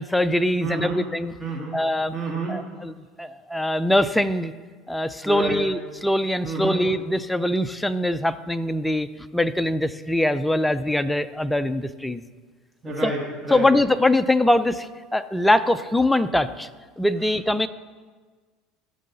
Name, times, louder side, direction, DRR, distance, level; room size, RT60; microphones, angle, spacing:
voice 1, 0.0-1.3 1.7-2.1 2.5-4.5 4.9-12.2 13.0-13.1 13.5-16.7 17.0-17.7, left 1 dB, 5° left, 11 dB, 0.5 m, -23 dB
voice 2, 0.6-1.0 1.4-1.8 2.1-2.6 5.2-5.6 6.4-6.8 12.8-13.7, right 2 dB, 25° right, -2 dB, 1.9 m, -29 dB
15.0 x 6.4 x 4.1 m, 1.5 s
supercardioid pair, 110°, 0 cm